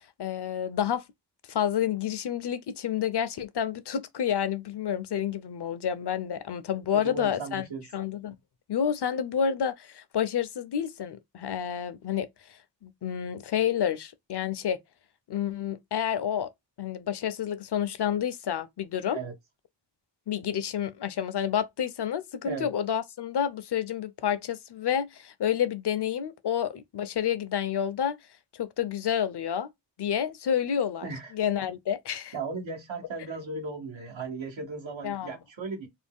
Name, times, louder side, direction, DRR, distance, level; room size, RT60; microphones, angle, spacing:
voice 1, 0.2-1.0 1.5-7.6 7.9-8.3 8.7-12.3 12.8-14.8 15.3-16.5 16.8-19.2 20.3-28.2 28.5-29.7 30.0-31.1 31.3-32.3 35.0-35.4, left 9 dB, 65° left, 0.6 m, -29 dB
voice 2, 6.9-7.8 19.1-19.3 22.4-22.7 31.0-31.3 32.3-35.9, right 4 dB, 90° right, 1.0 m, -36 dB
2.6 x 2.1 x 3.5 m
wide cardioid pair, 55°, 44 cm